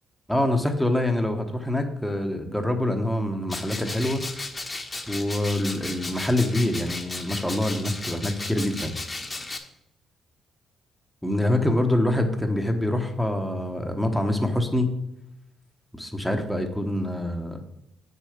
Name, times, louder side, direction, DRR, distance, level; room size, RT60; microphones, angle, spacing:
voice 1, 0.3-4.2 5.1-9.0 11.2-15.0 15.9-17.6, left 1 dB, ahead, 4 dB, 1.1 m, -25 dB
sound 1, 3.5-9.6, left 2 dB, 25° left, 1.2 m, -35 dB
7.4 x 6.6 x 5.1 m, 0.84 s
cardioid pair, 90°, 0 cm